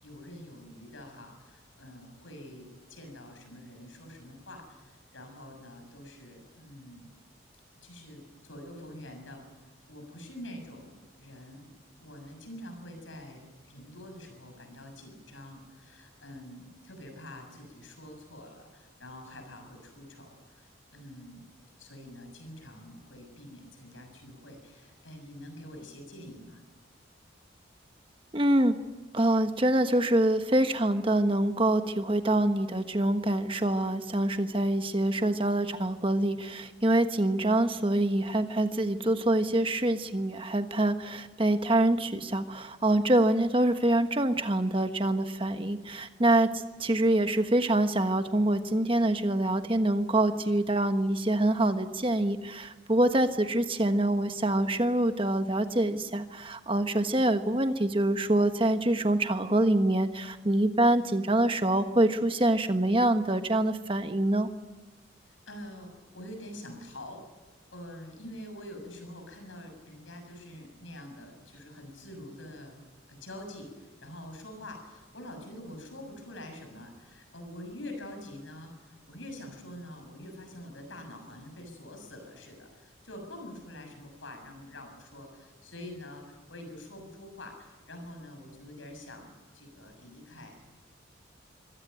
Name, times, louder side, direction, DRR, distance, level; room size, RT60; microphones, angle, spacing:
voice 1, 0.0-7.1 7.8-9.5 9.9-11.7 12.0-21.4 21.8-26.6 65.2-67.2 67.7-72.8 73.1-90.6, left 1 dB, 85° left, 5 dB, 6.8 m, -46 dB
voice 2, 28.3-28.8 29.1-46.5 46.8-64.5, right 1 dB, 25° right, 8 dB, 1.3 m, -25 dB
24.5 x 17.5 x 9.1 m, 1.2 s
head